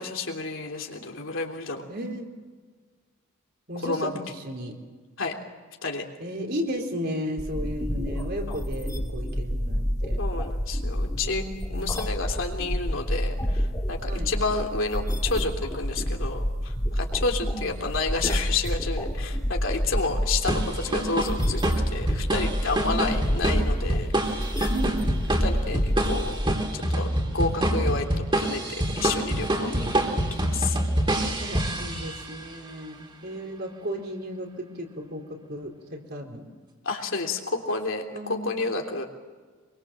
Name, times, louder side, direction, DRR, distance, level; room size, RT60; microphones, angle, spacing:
voice 1, 0.0-1.8 3.8-4.1 5.2-5.4 5.8-6.0 8.5-8.6 10.2-11.4 11.7-24.6 25.4-26.4 26.7-28.6 29.0-29.9 30.3-30.8 36.8-39.1, left 3 dB, 65° left, 2 dB, 3.3 m, -30 dB
voice 2, 1.9-2.3 3.7-4.7 6.2-10.2 11.2-12.0 14.0-14.3 17.4-17.7 22.9-23.1 24.7-25.0 29.6-29.9 31.4-36.4 38.1-38.5, equal, 50° right, 2 dB, 4.1 m, -34 dB
sound 1, 7.4-26.4, equal, 15° left, 2.3 m, -28 dB
sound 2, 20.5-32.4, right 1 dB, 25° right, 3.6 m, -27 dB
25.5 x 23.5 x 7.7 m, 1.4 s
head